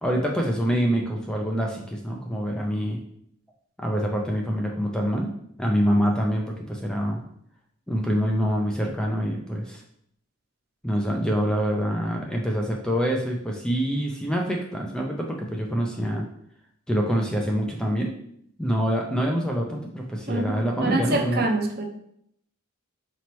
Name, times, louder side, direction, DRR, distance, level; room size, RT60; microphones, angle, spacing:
voice 1, 0.0-3.0 3.8-5.3 5.6-7.2 7.9-9.8 10.8-16.2 16.9-18.1 18.6-21.4, equal, 5° left, 0 dB, 0.3 m, -25 dB
voice 2, 20.3-21.9, right 2 dB, 45° right, 4 dB, 0.5 m, -26 dB
4.3 x 2.9 x 3.0 m, 0.70 s
head